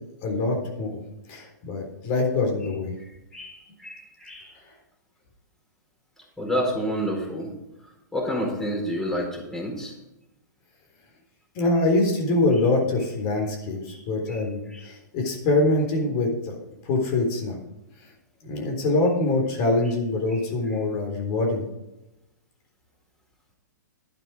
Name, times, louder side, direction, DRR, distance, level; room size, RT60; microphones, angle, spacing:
voice 1, 0.2-1.0 1.3-2.9 11.5-16.6 16.9-17.6 18.4-21.6, left 2 dB, 40° left, 2 dB, 3.8 m, -24 dB
voice 2, 3.3-4.5 6.4-7.5 8.1-9.9 13.9-14.0 14.3-14.4 14.7-14.9 20.3-20.4, equal, 5° left, -1 dB, 4.4 m, -29 dB
12.0 x 9.1 x 5.0 m, 0.93 s
hypercardioid pair, 120°, 10 cm